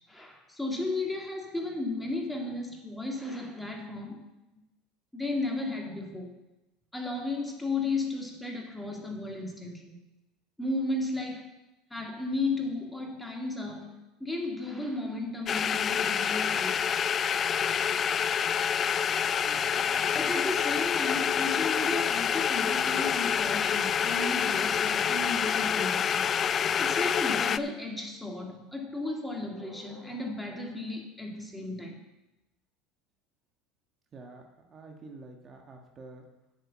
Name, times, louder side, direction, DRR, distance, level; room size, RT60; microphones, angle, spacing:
voice 1, 0.1-4.3 5.1-6.3 6.9-10.0 10.6-11.5 11.9-17.0 20.1-26.4 26.8-32.0, left 2 dB, 5° left, 1 dB, 2.0 m, -34 dB
sound 1, 15.5-27.6, left 8 dB, 35° left, 0.3 m, -27 dB
voice 2, 19.4-20.4 34.1-36.3, right 3 dB, 35° right, 2 dB, 1.4 m, -48 dB
8.3 x 6.6 x 7.3 m, 0.98 s
supercardioid pair, 95°, 0 cm